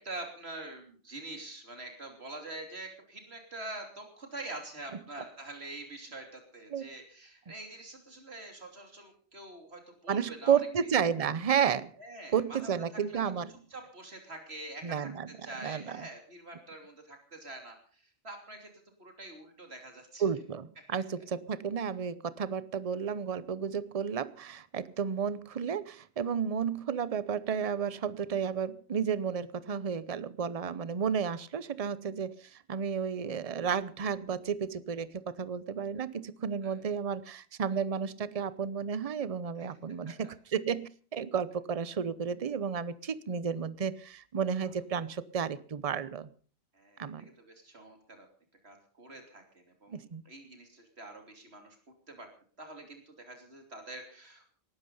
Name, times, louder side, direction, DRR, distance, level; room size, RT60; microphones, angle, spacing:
voice 1, 0.0-10.6 12.0-13.3 13.7-18.7 19.0-20.2 20.9-21.0 36.6-36.8 39.6-39.7 40.1-40.3 46.7-48.3 48.6-51.8 52.1-52.3 52.6-54.5, right 2 dB, 80° right, 4 dB, 3.3 m, -45 dB
voice 2, 10.1-11.9 12.3-13.5 14.8-15.3 15.6-16.0 20.2-46.3 47.0-47.3 49.9-50.2, right 7 dB, 40° right, 17 dB, 0.8 m, -32 dB
19.0 x 12.0 x 5.5 m, 0.42 s
omnidirectional pair, 1.1 m